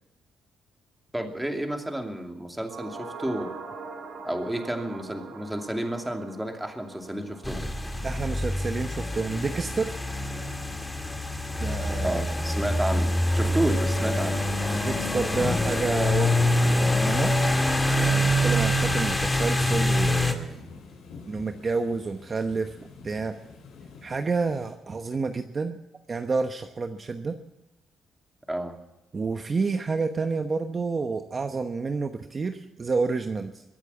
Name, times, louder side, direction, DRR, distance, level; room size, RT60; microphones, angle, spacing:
voice 1, 1.1-3.5 4.2-7.7 12.0-14.4 28.5-28.8, right 1 dB, 10° right, 4 dB, 2.6 m, -31 dB
sound 1, 2.6-11.1 11.4-11.5, right 3 dB, 70° right, 4.7 m, -44 dB
sound 2, 7.4-20.3, left 1 dB, 10° left, 2.0 m, -25 dB
sound 3, 7.5-24.7, left 4 dB, 80° left, 5.3 m, -42 dB
voice 2, 8.0-10.0 11.6-12.2 14.6-16.4 16.7-17.3 18.0-20.7 21.3-22.7 23.0-23.3 24.0-25.8 26.1-27.4 29.1-33.6, right 4 dB, 35° right, 7 dB, 1.1 m, -29 dB
22.5 x 8.9 x 7.1 m, 0.97 s
cardioid pair, 90°, 0 cm